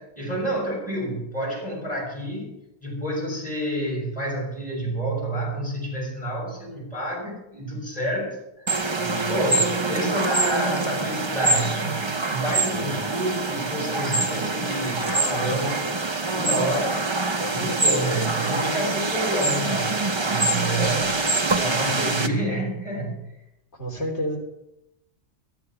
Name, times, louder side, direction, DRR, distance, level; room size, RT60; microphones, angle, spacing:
voice 1, 0.0-2.5 2.8-15.8 16.3-17.1 17.5-21.2 21.6-23.3, right 1 dB, 5° left, -4 dB, 6.1 m, -29 dB
sound 1, 8.7-22.3, right 3 dB, 30° right, 0.6 m, -25 dB
voice 2, 12.6-13.1 23.7-24.4, equal, 65° left, -1 dB, 3.9 m, -31 dB
13.0 x 10.5 x 5.8 m, 0.86 s
omnidirectional pair, 1.2 m